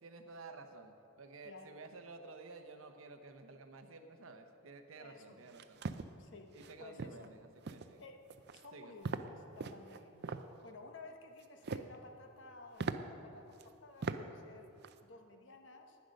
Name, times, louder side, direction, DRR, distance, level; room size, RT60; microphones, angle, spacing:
voice 1, 0.0-5.8 6.5-8.0 8.7-8.9, right 3 dB, 75° right, 7 dB, 0.9 m, -52 dB
voice 2, 1.4-1.8 5.0-5.5 6.2-6.5 6.8-7.3 8.0-8.2 8.5-10.3 10.6-14.7 15.0-16.0, left 3 dB, 60° left, 5 dB, 1.0 m, -54 dB
sound 1, 5.5-6.1 6.6-6.7 7.0-7.3 7.6-7.9 8.3-8.7 9.0-9.3 9.6-10.4 11.4-11.9 12.4-12.5 12.8-13.0 13.6-13.7 14.0-14.2 14.6-14.9, right 4 dB, 50° right, 0.5 m, -40 dB
10.5 x 9.6 x 6.5 m, 2.7 s
head